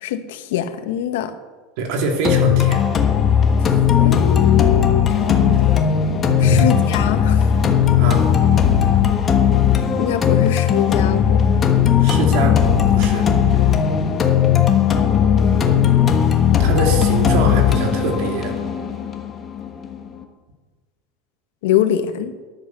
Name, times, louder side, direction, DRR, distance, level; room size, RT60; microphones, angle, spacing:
voice 1, 0.0-1.3 4.0-5.6 6.4-7.4 10.0-11.4 14.9-15.8 21.6-22.3, left 10 dB, 85° left, 9 dB, 1.4 m, -24 dB
voice 2, 1.8-2.9 6.4-6.8 8.0-8.2 12.0-13.3 16.6-18.5, right 2 dB, 55° right, 2 dB, 3.2 m, -23 dB
sound 1, 2.2-20.2, left 8 dB, 20° left, 1.3 m, -17 dB
13.5 x 11.0 x 6.8 m, 1.4 s
supercardioid pair, 170°, 0 cm